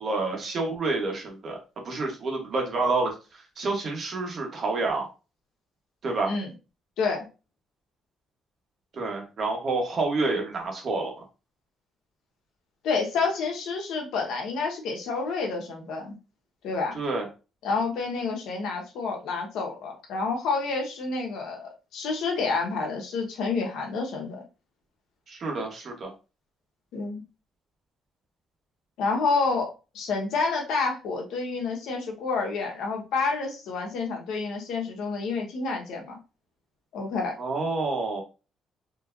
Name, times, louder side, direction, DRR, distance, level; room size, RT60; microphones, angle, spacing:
voice 1, 0.0-1.6 1.8-5.1 6.0-6.3 8.9-11.1 16.9-17.3 25.3-26.1 37.4-38.2, right 3 dB, 40° right, 1 dB, 1.3 m, -28 dB
voice 2, 12.8-16.2 16.6-17.0 17.6-24.4 26.9-27.2 29.0-29.7 29.9-36.2 36.9-37.3, left 4 dB, 85° left, 1 dB, 1.2 m, -29 dB
4.4 x 3.0 x 2.6 m, 0.31 s
cardioid pair, 165°, 0 cm